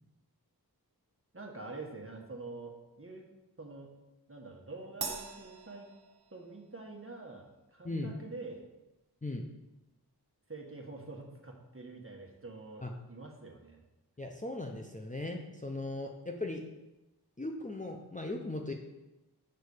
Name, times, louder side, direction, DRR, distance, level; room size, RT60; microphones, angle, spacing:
voice 1, 1.3-3.3 3.6-3.9 4.3-5.9 6.3-8.6 10.5-13.8, right 3 dB, 35° right, 0 dB, 1.4 m, -46 dB
Crash cymbal, 5.0-6.7, right 4 dB, 65° right, 0.9 m, -42 dB
voice 2, 14.2-16.6 17.4-18.7, left 2 dB, 20° left, 1 dB, 0.6 m, -38 dB
6.7 x 4.0 x 6.5 m, 0.99 s
wide cardioid pair, 55°, 39 cm